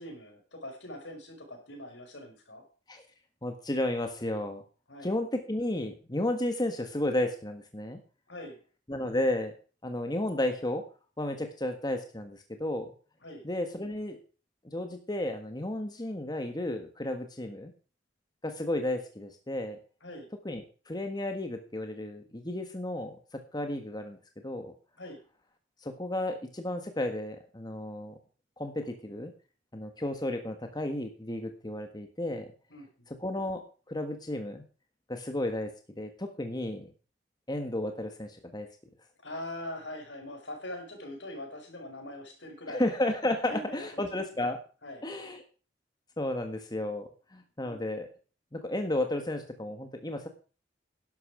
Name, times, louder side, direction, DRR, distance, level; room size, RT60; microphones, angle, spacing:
voice 1, 0.0-2.6 4.9-5.1 8.3-8.6 13.2-13.4 20.0-20.3 25.0-25.2 32.7-32.9 39.2-42.8 43.5-44.0 44.8-45.0 47.6-47.8, left 1 dB, 75° left, 4 dB, 5.4 m, -42 dB
voice 2, 3.4-4.6 5.0-8.0 8.9-9.5 9.8-10.8 11.2-12.9 13.4-14.2 14.6-17.7 18.4-19.8 20.4-24.2 24.4-24.7 25.8-28.2 28.6-29.3 29.7-32.5 33.1-34.6 35.1-35.7 36.0-36.9 37.5-38.7 42.7-44.6 45.0-45.4 46.2-48.1 48.5-50.3, left 1 dB, 20° left, 5 dB, 1.6 m, -33 dB
12.0 x 11.5 x 5.0 m, 0.37 s
head